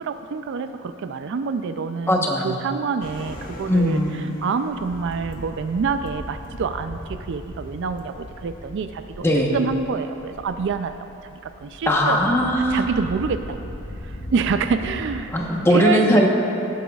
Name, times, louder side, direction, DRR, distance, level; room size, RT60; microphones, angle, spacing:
voice 1, 0.0-9.3 9.5-10.9 11.2-12.2 12.7-13.7 14.0-15.3 15.7-16.2, right 5 dB, 60° right, 9 dB, 0.4 m, -27 dB
voice 2, 2.1-2.5 3.7-4.1 9.2-9.5 11.9-12.9 15.3-16.3, equal, 10° left, -1 dB, 1.0 m, -19 dB
sound 1, 3.0-15.3, left 1 dB, 45° left, 1.1 m, -38 dB
17.5 x 9.1 x 2.4 m, 2.8 s
head